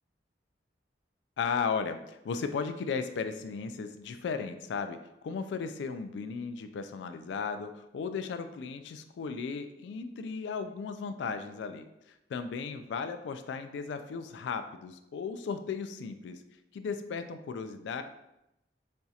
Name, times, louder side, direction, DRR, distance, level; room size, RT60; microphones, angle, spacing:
voice 1, 1.4-5.0 5.2-11.9 12.3-16.4 16.7-18.0, left 5 dB, 80° left, 9 dB, 0.3 m, -35 dB
4.3 x 2.7 x 2.3 m, 0.86 s
head